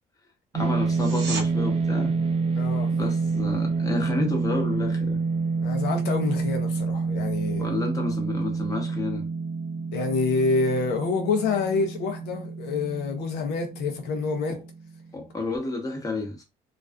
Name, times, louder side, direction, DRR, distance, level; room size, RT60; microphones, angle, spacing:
voice 1, 0.5-2.1 3.0-5.2 7.6-9.2 14.5-14.6 15.1-16.4, left 2 dB, 20° left, 0.8 m, -30 dB
sound 1, 0.5-15.0, right 4 dB, 35° right, 0.4 m, -28 dB
sound 2, 0.9-1.5 12.8-12.9, right 5 dB, 80° right, 0.8 m, -34 dB
voice 2, 2.5-2.9 5.6-7.7 9.9-14.6, left 4 dB, 85° left, 0.6 m, -27 dB
2.4 x 2.3 x 2.2 m
cardioid pair, 110°, 17 cm